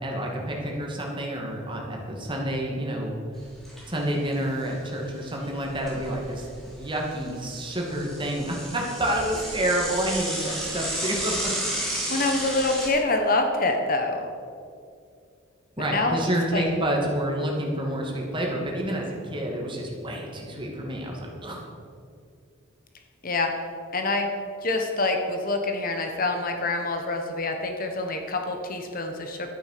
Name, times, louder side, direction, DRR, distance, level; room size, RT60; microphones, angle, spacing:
voice 1, 0.0-3.1 3.9-11.5 15.8-21.6, right 1 dB, 25° right, -1 dB, 2.3 m, -29 dB
Bicycle / Mechanisms, 3.4-4.0 4.3-4.4 4.7-4.8 5.4-6.6 7.0-12.9, right 1 dB, ahead, 3.1 m, -32 dB
voice 2, 12.1-14.3 15.8-16.2 16.5-16.6 23.2-23.5 23.9-24.3 24.6-29.5, left 2 dB, 40° left, 4 dB, 1.2 m, -26 dB
12.0 x 9.9 x 6.8 m, 2.3 s
head